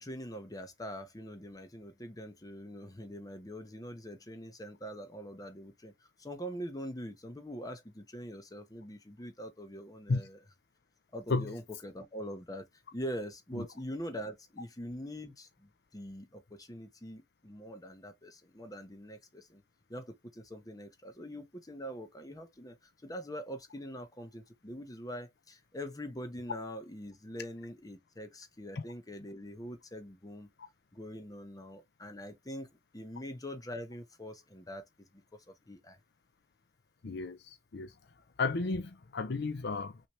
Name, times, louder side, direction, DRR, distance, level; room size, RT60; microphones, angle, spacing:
voice 1, 0.0-10.4 11.1-12.7 12.9-19.6 19.9-30.5 30.9-36.0, equal, 20° left, 0.9 m, -43 dB
voice 2, 37.0-37.9 38.4-40.0, left 3 dB, 60° left, 0.5 m, -33 dB
5.8 x 2.9 x 3.1 m
head